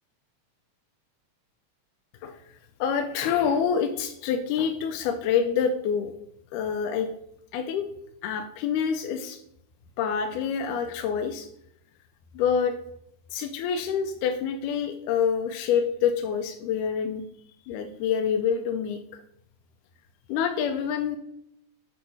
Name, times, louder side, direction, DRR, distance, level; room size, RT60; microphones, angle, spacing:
voice 1, 2.8-6.1 6.5-7.1 7.5-7.9 8.2-9.4 10.0-11.5 12.4-12.8 13.3-17.2 17.7-19.2 20.3-21.2, left 7 dB, 85° left, 6 dB, 2.0 m, -26 dB
8.1 x 3.2 x 4.6 m, 0.76 s
omnidirectional pair, 3.6 m